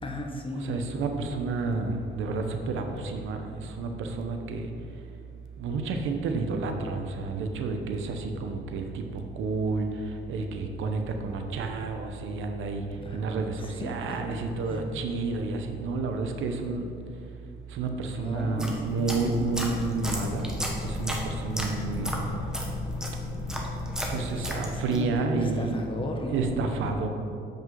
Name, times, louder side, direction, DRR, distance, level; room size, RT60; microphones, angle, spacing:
voice 1, 0.0-0.8 12.9-13.2 13.6-14.3 14.7-14.8 18.1-19.2 24.4-27.0, left 2 dB, 25° left, 3 dB, 0.9 m, -36 dB
voice 2, 0.6-3.4 3.8-4.6 5.6-8.8 9.4-9.9 10.3-12.8 13.1-16.9 17.7-20.5 20.8-22.1 24.1-25.8 26.3-27.1, right 3 dB, 80° right, 5 dB, 0.7 m, -30 dB
sound 1, 18.4-25.1, left 1 dB, 5° right, 1.1 m, -33 dB
7.4 x 5.4 x 3.8 m, 2.4 s
cardioid pair, 90°, 20 cm